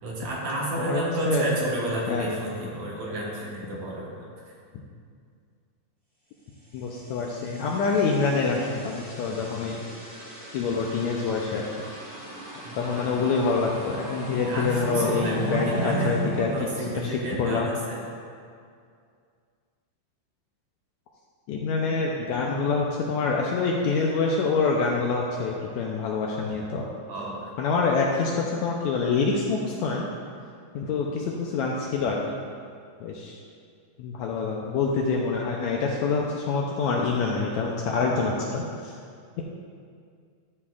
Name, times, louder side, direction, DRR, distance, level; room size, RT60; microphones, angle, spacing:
voice 1, 0.0-4.2 12.7-13.2 14.5-18.0 27.1-27.5, right 1 dB, 65° right, -4 dB, 2.3 m, -31 dB
voice 2, 0.8-1.5 2.1-2.3 6.7-9.8 10.5-11.6 12.8-16.5 16.9-17.1 17.4-17.7 21.5-26.9 27.6-30.1 30.7-32.2 33.0-33.4 34.0-38.9, left 4 dB, 80° left, -1 dB, 1.7 m, -26 dB
sound 1, 6.9-17.6, equal, 35° right, 0.5 m, -36 dB
12.0 x 7.0 x 2.4 m, 2.2 s
omnidirectional pair, 3.7 m